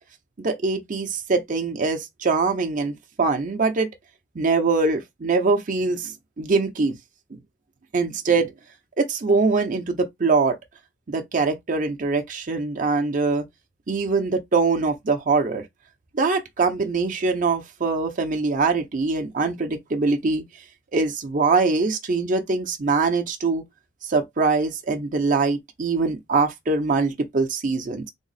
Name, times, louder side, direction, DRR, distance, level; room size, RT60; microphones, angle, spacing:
voice 1, 0.4-3.9 4.4-6.9 7.9-8.5 9.0-10.6 11.1-13.4 13.9-15.6 16.1-20.4 20.9-23.6 24.0-28.1, right 4 dB, 45° right, 0.6 m, -23 dB
3.5 x 2.0 x 4.0 m
head